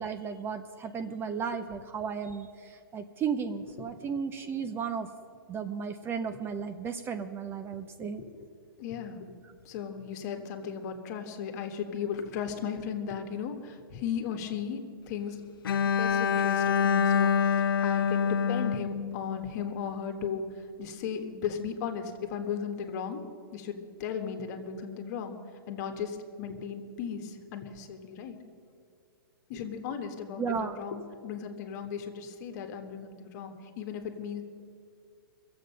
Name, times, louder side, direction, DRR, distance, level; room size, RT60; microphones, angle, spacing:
voice 1, 0.0-5.1 5.5-8.2 30.4-30.8, right 6 dB, 20° right, 9 dB, 0.6 m, -34 dB
voice 2, 8.1-8.5 8.8-9.3 9.6-14.8 15.1-15.4 15.8-17.3 17.6-20.4 20.8-23.2 23.5-25.4 25.7-28.4 29.5-34.4, left 7 dB, 50° left, 6 dB, 1.5 m, -36 dB
Bowed string instrument, 15.6-19.7, left 7 dB, 75° left, 0.5 m, -26 dB
22.0 x 7.7 x 5.6 m, 2.3 s
hypercardioid pair, 125°, 12 cm